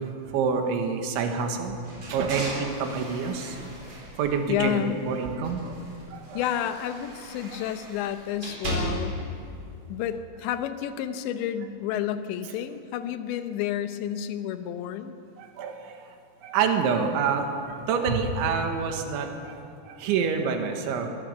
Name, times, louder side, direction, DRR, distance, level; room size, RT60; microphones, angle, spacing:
voice 1, 0.3-1.8 2.1-3.6 4.2-5.8 6.1-6.4 15.4-16.0 16.4-19.6 19.8-21.1, right 5 dB, 80° right, 4 dB, 4.0 m, -27 dB
sound 1, 1.8-5.0 5.4-9.3, right 1 dB, 30° right, 4.9 m, -36 dB
voice 2, 4.5-5.1 6.3-9.2 9.9-15.2, left 10 dB, 80° left, 9 dB, 3.2 m, -30 dB
22.5 x 18.5 x 6.8 m, 2.5 s
omnidirectional pair, 5.3 m